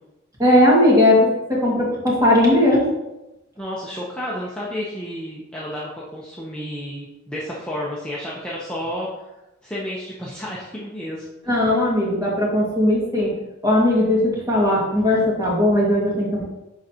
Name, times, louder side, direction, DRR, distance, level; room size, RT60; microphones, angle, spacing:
voice 1, 0.4-2.9 11.5-13.4 13.6-16.4, left 1 dB, 15° right, -5 dB, 2.0 m, -18 dB
voice 2, 3.6-9.1 9.6-11.5, equal, 5° left, -7 dB, 0.8 m, -31 dB
11.5 x 3.9 x 2.9 m, 0.98 s
head